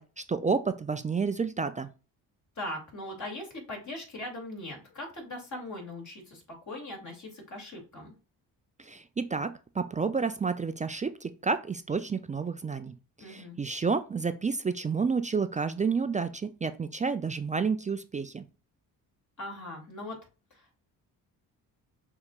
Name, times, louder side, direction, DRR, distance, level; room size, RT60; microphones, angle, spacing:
voice 1, 0.0-1.9 8.8-18.4, right 5 dB, 20° right, 10 dB, 0.3 m, -30 dB
voice 2, 2.6-8.1 13.2-13.5 19.4-20.2 20.5-20.7, left 1 dB, 45° left, 0 dB, 2.5 m, -40 dB
6.6 x 2.9 x 2.4 m, 0.34 s
supercardioid pair, 60°, 41 cm